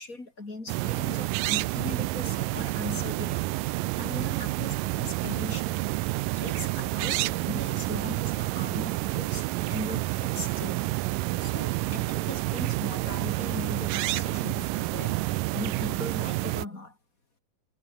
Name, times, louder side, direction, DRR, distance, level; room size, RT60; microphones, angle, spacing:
voice 1, 0.0-6.0 6.3-11.0 11.4-15.2 15.5-17.0, left 2 dB, 25° left, 3.8 m, -39 dB
sound 1, 0.7-16.7, right 19 dB, 80° right, 2.2 m, -29 dB
omnidirectional pair, 4.2 m